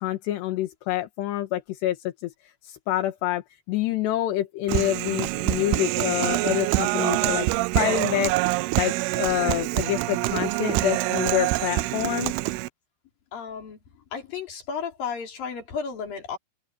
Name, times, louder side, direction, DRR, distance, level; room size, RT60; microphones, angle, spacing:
voice 1, 0.0-3.4 3.7-7.5 7.8-8.4 8.8-12.4, left 13 dB, 75° left, 3.4 m, -27 dB
Human voice, 4.7-12.7, right 21 dB, 90° right, 2.2 m, -25 dB
voice 2, 13.3-13.8 14.1-16.4, left 6 dB, 55° left, 5.6 m, -33 dB
omnidirectional pair, 5.1 m